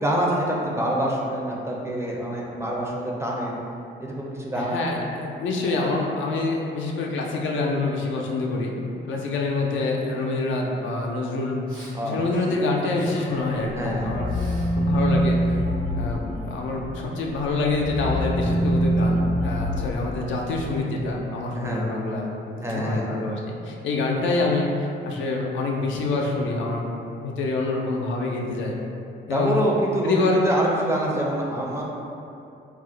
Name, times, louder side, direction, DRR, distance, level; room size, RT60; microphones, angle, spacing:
voice 1, 0.0-3.5 4.0-4.8 11.9-12.2 12.9-13.0 13.8-14.2 19.8-19.9 21.5-21.9 22.6-23.1 29.3-31.8, right 1 dB, 15° right, -3 dB, 0.4 m, -26 dB
voice 2, 4.6-8.7 9.1-11.6 12.0-14.3 14.7-15.6 15.9-26.9 27.2-28.7 29.3-29.6 30.0-30.4, left 3 dB, 75° left, -1 dB, 0.5 m, -26 dB
Respiratory sounds, 11.7-11.9 12.3-12.6 12.9-13.2 13.6-14.7 15.0-16.4, equal, 90° right, 1.0 m, -44 dB
sound 1, 13.1-17.0 17.4-20.8, equal, 40° left, 0.7 m, -25 dB
2.4 x 2.0 x 3.7 m, 2.7 s
cardioid pair, 90°, 20 cm